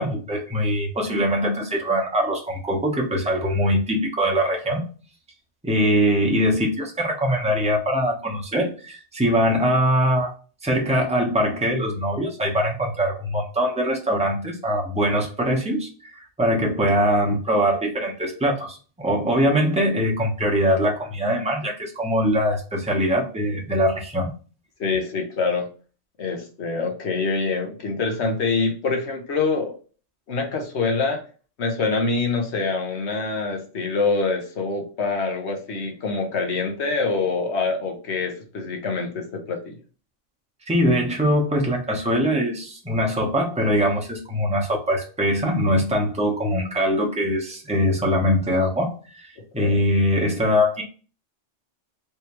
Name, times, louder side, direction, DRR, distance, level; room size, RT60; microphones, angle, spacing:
voice 1, 0.0-4.9 5.6-10.3 10.6-24.3 40.7-50.8, equal, 5° right, -1 dB, 0.8 m, -22 dB
voice 2, 24.8-25.7 26.2-29.7 30.3-31.2 31.6-39.8 49.6-49.8, left 4 dB, 65° left, 3 dB, 1.2 m, -25 dB
3.4 x 3.1 x 3.0 m, 0.37 s
omnidirectional pair, 1.3 m